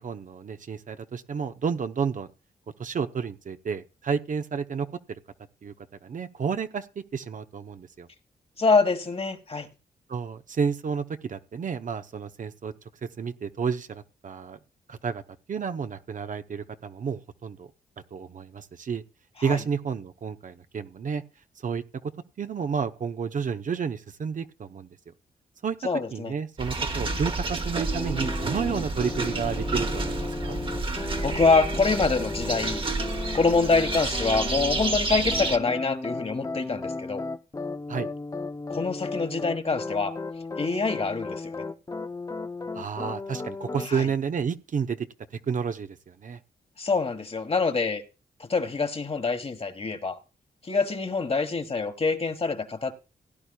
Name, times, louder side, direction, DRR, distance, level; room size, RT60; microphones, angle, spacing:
voice 1, 0.0-2.3 2.8-5.2 5.6-5.7 6.0-8.1 10.1-12.7 13.2-14.6 14.9-15.2 15.5-17.7 18.1-19.0 19.4-21.2 21.6-22.1 22.4-24.9 25.6-25.8 26.1-30.6 37.9-38.1 42.7-45.1 45.5-46.4, right 6 dB, 55° right, 0.8 m, -31 dB
voice 2, 8.6-9.7 19.4-19.6 25.8-26.3 31.2-32.8 33.3-37.2 38.7-40.1 40.6-41.6 43.9-44.1 46.8-48.0 48.4-50.2 50.6-52.9, left 4 dB, 40° left, 1.5 m, -25 dB
sound 1, 26.6-35.6, right 3 dB, 35° right, 1.2 m, -30 dB
sound 2, 27.9-35.0 35.2-43.9, left 3 dB, 20° left, 0.6 m, -35 dB
17.0 x 10.0 x 2.3 m
cardioid pair, 75°, 16 cm